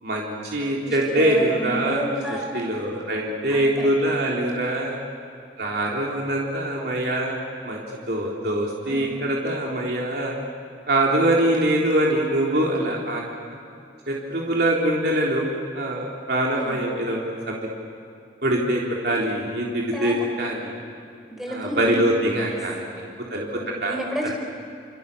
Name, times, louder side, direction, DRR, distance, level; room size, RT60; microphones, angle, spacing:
voice 1, 0.0-2.0 2.5-5.0 5.6-10.4 10.9-13.2 14.1-15.4 15.7-17.2 17.5-17.6 18.4-20.8 21.5-24.0, right 1 dB, 65° right, -2 dB, 3.7 m, -24 dB
voice 2, 0.9-2.4 3.5-3.9 8.8-9.2 16.5-16.9 19.9-20.1 21.3-22.0 22.5-22.6 23.0-23.1 23.6-24.3, right 1 dB, ahead, -1 dB, 4.9 m, -31 dB
28.5 x 28.0 x 7.1 m, 2.4 s
head